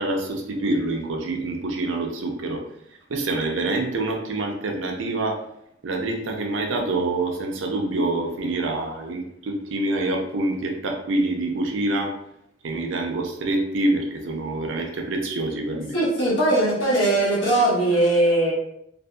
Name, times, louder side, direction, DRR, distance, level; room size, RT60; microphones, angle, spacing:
voice 1, 0.0-2.6 3.1-5.4 5.8-12.1 12.6-15.9, right 2 dB, 85° right, 2 dB, 0.5 m, -26 dB
voice 2, 15.9-18.5, right 1 dB, 90° left, -6 dB, 1.0 m, -20 dB
2.6 x 2.6 x 2.2 m, 0.76 s
head